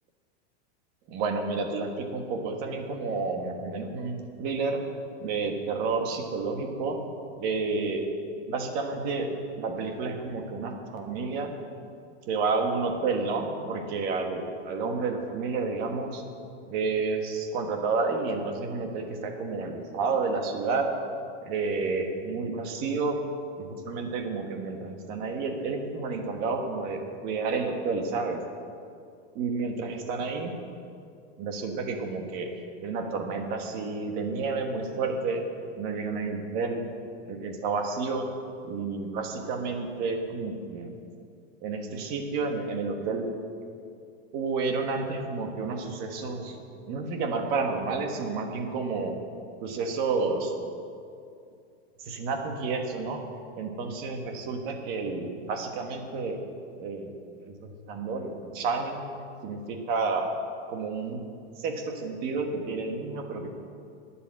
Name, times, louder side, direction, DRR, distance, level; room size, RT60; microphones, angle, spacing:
voice 1, 1.1-4.8 5.2-7.0 7.4-8.0 8.5-9.3 9.6-11.5 12.3-16.2 16.7-20.9 21.4-23.2 23.6-28.4 29.3-30.5 31.4-32.5 32.8-35.4 35.8-36.8 37.3-38.2 38.6-40.9 41.6-43.2 44.3-46.6 46.9-49.1 49.6-50.5 52.0-53.2 53.5-56.4 56.8-57.1 57.6-59.0 59.4-60.3 60.7-61.2 61.6-63.5, right 4 dB, 30° right, 4 dB, 1.4 m, -30 dB
12.5 x 10.0 x 7.5 m, 2.4 s
supercardioid pair, 175°, 33 cm